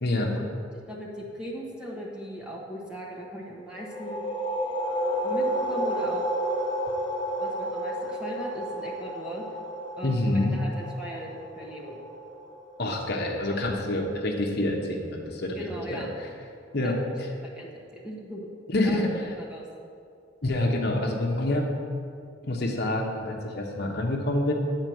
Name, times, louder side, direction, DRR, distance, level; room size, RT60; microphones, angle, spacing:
voice 1, 0.0-0.3 10.0-10.6 12.8-15.6 15.9-16.3 16.7-17.3 18.7-19.1 20.4-21.7 22.4-24.5, left 1 dB, 55° left, 0 dB, 1.0 m, -27 dB
voice 2, 0.9-4.2 5.2-6.3 7.4-9.4 10.0-12.0 12.9-13.0 13.4-13.6 15.5-16.1 16.8-16.9 17.4-18.5 18.8-19.0 19.4-19.7, equal, 5° right, -3 dB, 1.2 m, -39 dB
sound 1, 3.8-13.2, right 1 dB, 25° left, 0.9 m, -31 dB
9.6 x 4.5 x 7.8 m, 2.4 s
head